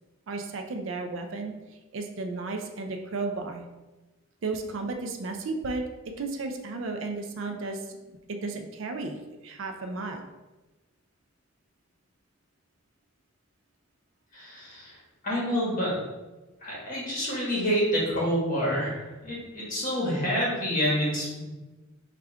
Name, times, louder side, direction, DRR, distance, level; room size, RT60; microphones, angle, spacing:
voice 1, 0.3-1.5 1.9-3.6 4.4-5.8 6.2-8.0 8.4-10.2, right 3 dB, 65° right, 5 dB, 0.4 m, -33 dB
voice 2, 14.3-14.9 15.2-15.9 16.6-21.4, equal, 40° left, -5 dB, 1.4 m, -28 dB
3.4 x 2.4 x 4.4 m, 1.1 s
head